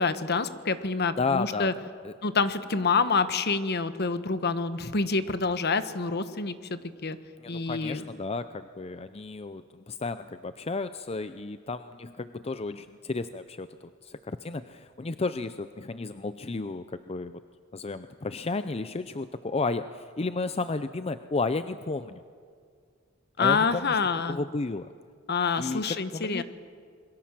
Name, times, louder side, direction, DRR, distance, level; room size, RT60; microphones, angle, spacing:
voice 1, 0.0-1.7 2.2-7.2 7.5-8.0 23.4-24.4 25.3-26.4, left 4 dB, 55° left, 11 dB, 1.2 m, -27 dB
voice 2, 1.2-1.7 2.0-2.1 7.4-17.4 17.7-22.2 23.4-24.0 24.3-24.9 25.6-26.4, left 3 dB, 30° left, 11 dB, 0.6 m, -33 dB
27.5 x 22.5 x 7.5 m, 2.1 s
head